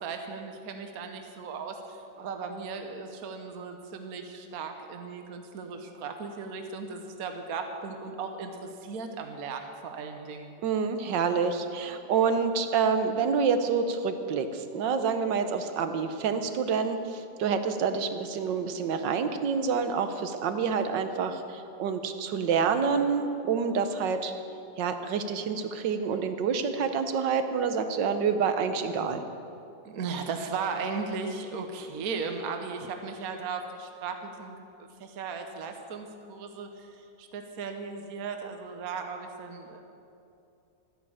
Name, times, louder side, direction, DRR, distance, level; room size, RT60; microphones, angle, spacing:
voice 1, 0.0-10.5 29.8-34.6 35.0-39.8, right 5 dB, 55° right, 5 dB, 1.4 m, -37 dB
voice 2, 10.6-24.3 24.8-29.2, right 6 dB, 80° right, 8 dB, 1.6 m, -27 dB
13.0 x 9.9 x 8.6 m, 2.6 s
omnidirectional pair, 1.9 m